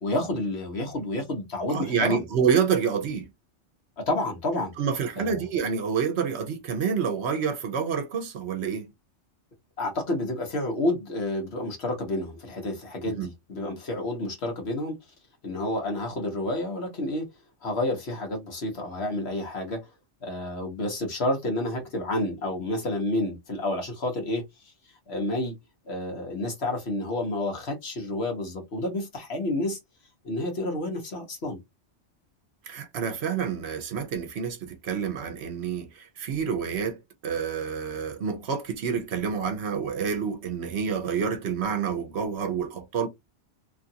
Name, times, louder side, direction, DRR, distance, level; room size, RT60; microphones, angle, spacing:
voice 1, 0.0-2.2 4.0-4.7 5.2-5.4 9.8-15.0 15.4-17.3 17.6-19.8 20.2-24.4 25.1-25.5 25.9-29.8 30.2-31.6, left 1 dB, 60° left, 1.4 m, -29 dB
voice 2, 1.7-3.3 4.8-8.9 13.2-13.3 32.7-43.1, right 6 dB, 65° right, 0.9 m, -28 dB
3.1 x 2.5 x 2.7 m
omnidirectional pair, 1.2 m